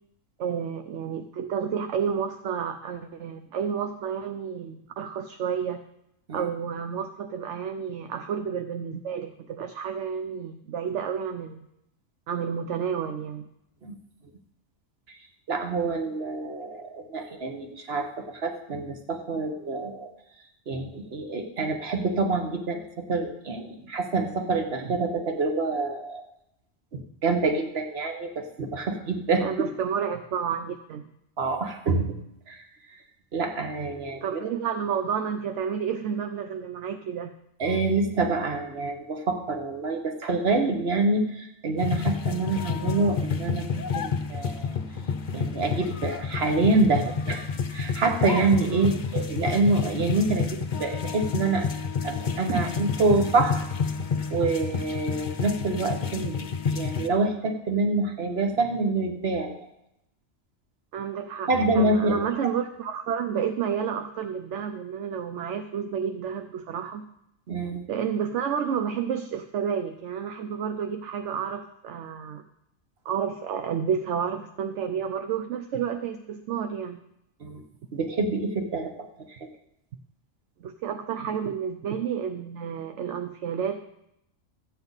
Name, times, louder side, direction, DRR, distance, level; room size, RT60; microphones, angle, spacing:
voice 1, 0.4-5.8 6.3-11.7 12.3-13.5 17.2-17.3 24.8-24.9 29.4-31.1 34.2-37.3 48.7-49.0 52.5-52.6 60.9-61.5 61.7-67.0 67.9-72.4 73.0-77.0 80.6-83.8, right 7 dB, 70° right, 8 dB, 0.9 m, -30 dB
voice 2, 15.5-20.1 20.7-26.2 26.9-29.7 31.4-32.1 32.5-32.6 33.3-34.4 37.6-44.7 45.3-47.4 47.7-51.7 52.0-53.6 54.3-59.7 61.5-62.2 67.5-67.8 77.4-77.6 77.9-79.1 79.4-79.5, right 3 dB, 50° right, 4 dB, 1.4 m, -26 dB
sound 1, 41.8-57.1, left 6 dB, 45° left, 0.7 m, -30 dB
13.5 x 8.7 x 4.0 m, 0.82 s
omnidirectional pair, 1.3 m